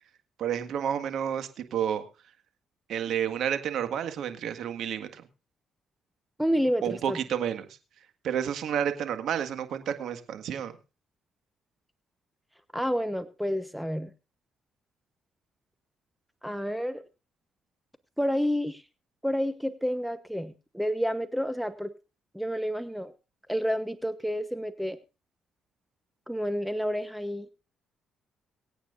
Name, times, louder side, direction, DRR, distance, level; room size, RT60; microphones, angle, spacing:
voice 1, 0.4-2.0 2.9-5.3 6.8-7.7 8.2-10.7, right 9 dB, 75° right, 9 dB, 1.8 m, -30 dB
voice 2, 6.4-7.2 12.7-14.1 16.4-17.0 18.2-18.8 19.2-21.9 22.3-23.1 23.5-25.0 26.3-27.5, equal, ahead, 11 dB, 1.0 m, -29 dB
24.0 x 8.9 x 2.5 m, 0.30 s
cardioid pair, 90°, 0 cm